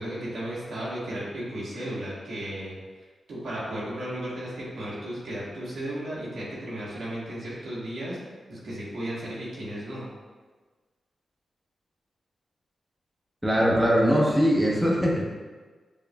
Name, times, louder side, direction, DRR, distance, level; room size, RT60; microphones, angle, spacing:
voice 1, 0.0-2.7 3.3-8.2 8.5-10.1, right 1 dB, 80° right, -7 dB, 1.3 m, -34 dB
voice 2, 13.4-15.2, equal, 10° right, -4 dB, 0.9 m, -21 dB
6.7 x 2.4 x 2.3 m, 1.4 s
cardioid pair, 55°, 0 cm